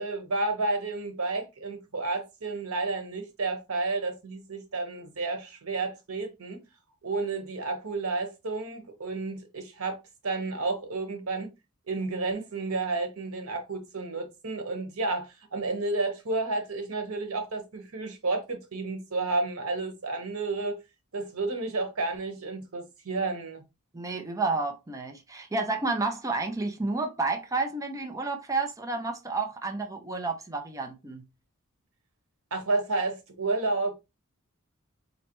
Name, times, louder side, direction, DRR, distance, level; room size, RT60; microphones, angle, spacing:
voice 1, 0.0-6.6 7.0-10.0 10.2-11.5 11.9-20.8 21.1-23.6 32.5-34.0, right 3 dB, 85° right, 1.1 m, -31 dB
voice 2, 23.9-31.2, right 3 dB, 15° right, 0.5 m, -30 dB
4.0 x 3.2 x 3.0 m
head